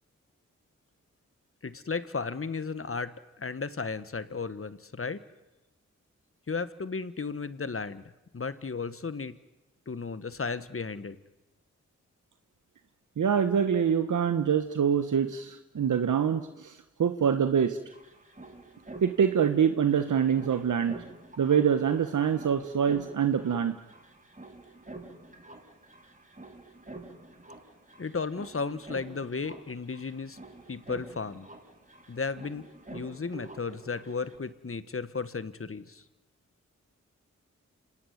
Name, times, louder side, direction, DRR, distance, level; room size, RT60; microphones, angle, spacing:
voice 1, 1.6-5.2 6.5-8.0 8.3-9.3 9.9-11.2 28.0-30.4 30.7-31.5 32.1-36.0, left 4 dB, 45° left, 14 dB, 1.6 m, -34 dB
voice 2, 13.2-17.8 19.0-21.0 21.4-23.7, right 7 dB, 75° right, 9 dB, 1.1 m, -25 dB
sound 1, 17.3-17.4 17.6-34.4, right 2 dB, 25° right, 7.0 m, -48 dB
26.5 x 18.0 x 9.5 m, 1.0 s
cardioid pair, 40°, 30 cm